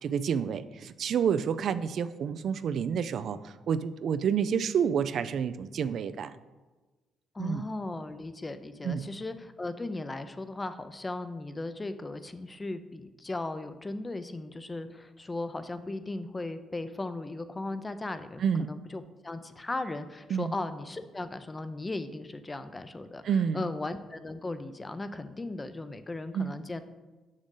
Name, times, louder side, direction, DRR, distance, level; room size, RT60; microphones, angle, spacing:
voice 1, 0.0-6.3 7.4-7.6 8.8-9.1 18.4-18.7 20.3-20.5 23.2-23.7 26.3-26.5, right 7 dB, 65° right, 13 dB, 0.3 m, -29 dB
voice 2, 7.3-23.2 23.5-26.8, left 2 dB, 20° left, 11 dB, 0.5 m, -37 dB
6.3 x 6.1 x 3.8 m, 1.2 s
cardioid pair, 90°, 0 cm